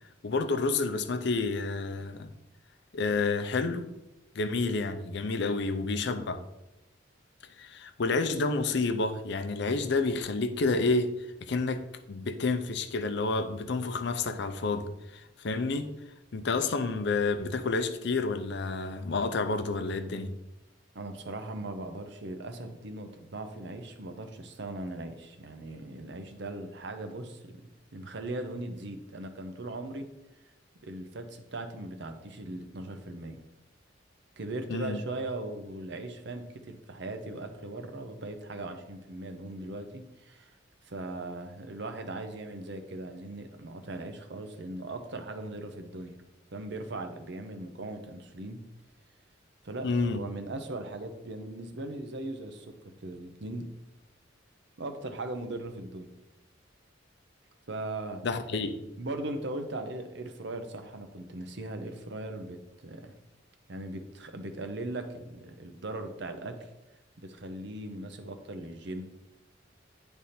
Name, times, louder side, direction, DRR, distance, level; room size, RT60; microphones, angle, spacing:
voice 1, 0.2-2.3 2.9-3.9 4.3-6.4 7.6-11.1 11.4-15.9 16.3-20.3 34.7-35.0 49.8-50.2 58.2-58.8, left 3 dB, 65° left, 0.6 m, -29 dB
voice 2, 20.9-30.1 30.8-33.4 34.4-40.5 40.9-46.2 46.5-48.6 49.6-52.7 53.0-53.7 54.8-56.1 57.7-58.2 59.0-62.6 62.8-63.1 63.7-66.6 67.2-69.1, right 2 dB, 65° right, 0.8 m, -39 dB
9.3 x 3.5 x 4.2 m
head